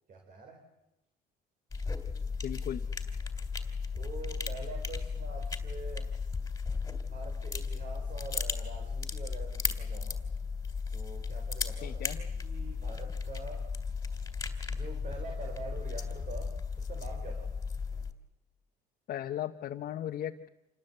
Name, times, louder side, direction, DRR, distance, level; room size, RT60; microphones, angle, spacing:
voice 1, 0.1-0.7 3.9-6.5 7.0-10.3 10.9-13.7 14.7-17.5, right 4 dB, 50° right, 3 dB, 4.5 m, -46 dB
sound 1, 1.7-18.1, left 5 dB, 20° left, 2.9 m, -35 dB
voice 2, 2.4-2.9 11.8-12.2 19.1-20.5, left 11 dB, 60° left, 4 dB, 1.1 m, -37 dB
27.5 x 20.0 x 8.1 m, 0.92 s
cardioid pair, 110°, 17 cm